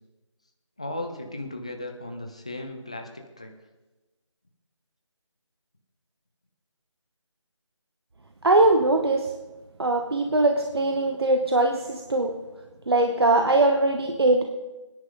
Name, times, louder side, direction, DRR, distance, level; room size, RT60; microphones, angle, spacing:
voice 1, 0.8-3.5, left 1 dB, 10° left, 4 dB, 0.5 m, -36 dB
voice 2, 8.4-9.3 9.8-12.3 12.9-14.5, right 2 dB, 55° right, 4 dB, 1.1 m, -21 dB
22.0 x 10.5 x 3.8 m, 1.1 s
figure-of-eight pair, 170°, 16 cm